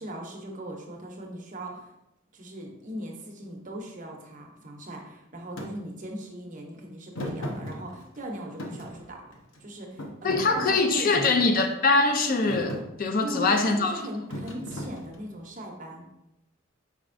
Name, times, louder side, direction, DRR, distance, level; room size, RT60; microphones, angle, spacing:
voice 1, 0.0-1.9 2.3-9.2 9.6-11.3 13.2-16.0, right 1 dB, 40° right, 1 dB, 0.7 m, -39 dB
Thump thud, 5.6-5.7 7.1-8.2 8.6-9.6 10.0-11.4 12.0-12.2 12.5-12.9 14.3-15.4, equal, 80° left, 0.8 m, -36 dB
voice 2, 10.2-14.0, left 3 dB, 45° left, 6 dB, 0.5 m, -23 dB
4.9 x 4.3 x 2.5 m, 0.87 s
head